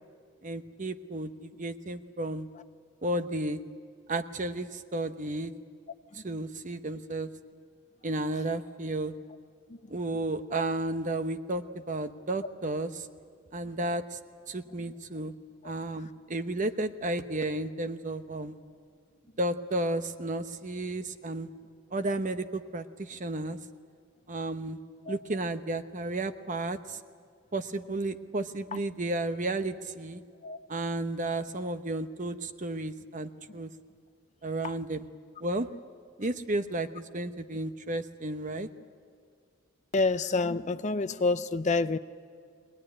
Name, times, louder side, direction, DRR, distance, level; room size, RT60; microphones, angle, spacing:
voice 1, 0.4-2.5 3.0-3.6 4.1-5.5 6.1-7.3 8.0-9.1 9.9-13.1 13.5-14.0 14.5-15.3 15.6-18.6 19.4-21.5 21.9-23.6 24.3-24.8 25.1-27.0 27.5-30.2 30.7-33.7 34.4-35.1 35.4-35.7 36.2-38.7, right 2 dB, 40° right, 10 dB, 0.9 m, -33 dB
voice 2, 39.9-42.0, left 3 dB, 35° left, 12 dB, 0.6 m, -27 dB
23.5 x 19.0 x 9.9 m, 2.1 s
head